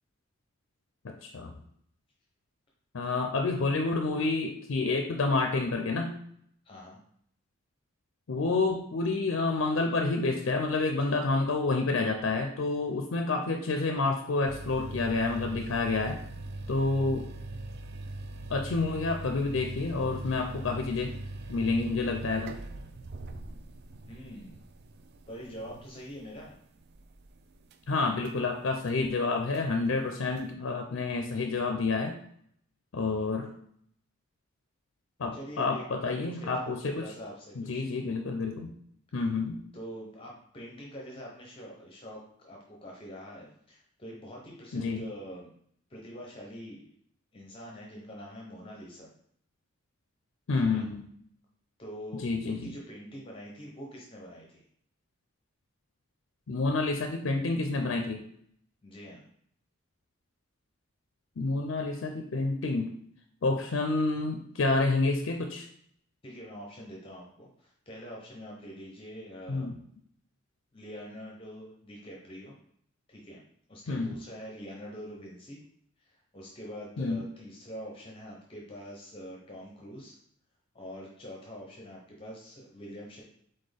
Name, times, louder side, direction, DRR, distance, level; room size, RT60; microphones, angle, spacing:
voice 1, 1.0-1.5 2.9-6.1 8.3-16.2 16.7-17.3 18.5-21.1 21.5-22.6 27.9-32.2 32.9-33.5 35.2-37.1 37.6-38.7 39.1-39.6 44.7-45.1 50.5-51.0 52.2-52.7 56.5-58.2 61.4-62.9 63.4-65.7 69.5-69.7 73.9-74.1 77.0-77.2, left 3 dB, 65° left, 4 dB, 0.5 m, -29 dB
voice 2, 6.6-7.0 24.1-24.6 25.3-26.6 35.3-36.7 37.0-37.8 39.7-45.6 45.9-46.9 47.3-49.1 50.7-50.8 51.8-54.6 58.8-59.2 66.2-69.7 70.7-72.5 73.1-73.4 73.7-75.6 76.0-80.2 80.7-83.2, equal, 25° left, -2 dB, 0.6 m, -45 dB
sound 1, 14.5-27.9 28.2-28.3 28.9-29.0 29.5-29.6 30.4-30.5, right 2 dB, 50° right, 0.4 m, -41 dB
4.2 x 3.8 x 3.3 m, 0.67 s
head